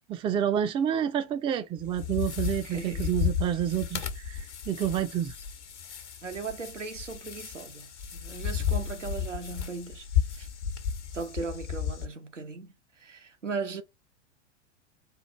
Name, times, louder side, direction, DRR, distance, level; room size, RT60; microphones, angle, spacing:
voice 1, 0.1-5.3, right 9 dB, 15° right, 0.5 m, -29 dB
sound 1, 1.8-12.1, left 8 dB, 70° left, 1.2 m, -33 dB
voice 2, 2.6-3.2 6.2-10.5 11.1-13.8, right 4 dB, 80° right, 1.0 m, -38 dB
4.6 x 2.5 x 4.0 m
figure-of-eight pair, 95°, 36 cm